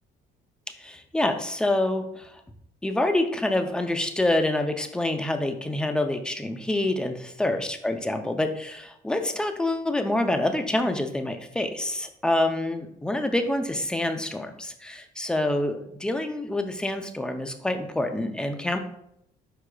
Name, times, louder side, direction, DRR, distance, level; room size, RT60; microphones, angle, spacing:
voice 1, 0.8-2.4 2.8-18.8, left 1 dB, 5° left, 7 dB, 0.4 m, -27 dB
4.7 x 4.6 x 2.2 m, 0.75 s
cardioid pair, 110°, 17 cm